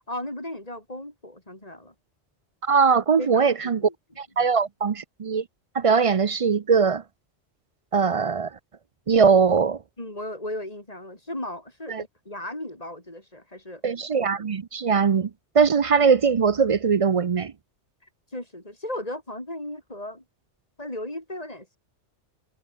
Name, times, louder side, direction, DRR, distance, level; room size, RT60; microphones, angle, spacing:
voice 1, 0.0-1.9 3.2-3.5 3.8-3.9 4.4-4.5 10.0-13.8 18.3-20.2 20.8-21.8, left 1 dB, 30° left, 5.5 m, -36 dB
voice 2, 2.6-3.8 4.2-5.4 5.7-7.0 7.9-8.6 9.1-9.8 11.9-12.0 13.8-17.5, right 5 dB, 45° right, 0.4 m, -21 dB
omnidirectional pair, 1.2 m